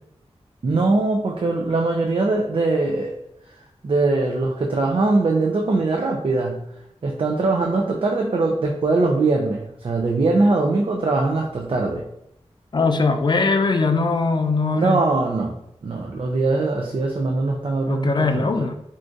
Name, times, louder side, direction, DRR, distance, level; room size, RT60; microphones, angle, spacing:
voice 1, 0.6-3.1 3.8-6.6 7.0-12.0 14.7-15.5 15.8-18.6, right 3 dB, 50° right, 0 dB, 0.4 m, -21 dB
voice 2, 12.7-15.0 17.9-18.7, left 3 dB, 40° left, 8 dB, 0.3 m, -21 dB
2.5 x 2.4 x 3.8 m, 0.78 s
wide cardioid pair, 70°, 12 cm